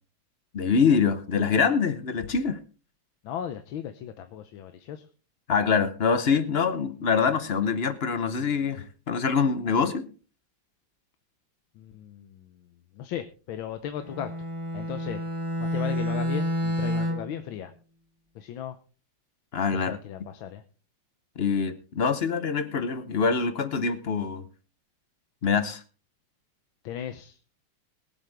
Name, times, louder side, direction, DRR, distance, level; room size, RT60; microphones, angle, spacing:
voice 1, 0.5-2.6 5.5-10.1 19.5-20.0 21.4-24.5 25.4-25.8, left 5 dB, 50° left, 12 dB, 0.7 m, -25 dB
voice 2, 3.2-5.0 11.8-12.5 12.9-14.3 14.7-15.2 15.7-17.7 18.3-18.8 19.7-20.6 26.8-27.4, left 10 dB, 80° left, 9 dB, 1.6 m, -36 dB
Bowed string instrument, 14.0-17.4, equal, 20° right, 1.1 m, -29 dB
22.0 x 8.0 x 3.4 m, 0.37 s
omnidirectional pair, 2.1 m